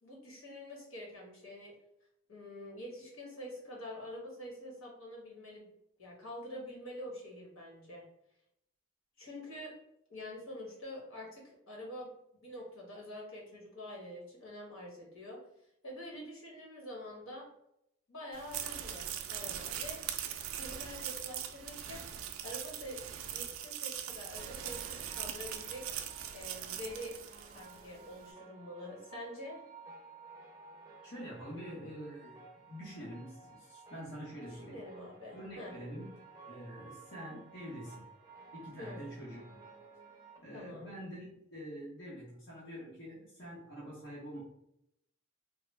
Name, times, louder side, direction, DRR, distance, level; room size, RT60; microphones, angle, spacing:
voice 1, 0.0-1.7 2.3-5.7 6.0-8.0 9.2-9.7 10.1-15.4 15.8-17.5 18.1-20.0 20.5-22.0 22.4-23.0 23.3-25.9 26.3-27.2 27.5-29.6 34.5-35.7 38.8-39.0 40.5-40.9, left 1 dB, 80° left, -3 dB, 1.2 m, -46 dB
sound 1, 18.3-27.9, right 9 dB, 80° right, 0.4 m, -41 dB
sound 2, 24.4-40.4, right 4 dB, 15° right, 0.5 m, -55 dB
voice 2, 31.0-34.8 35.3-38.1 38.5-39.7 40.4-44.4, equal, 60° left, -7 dB, 0.8 m, -46 dB
3.2 x 2.2 x 3.1 m, 0.78 s
head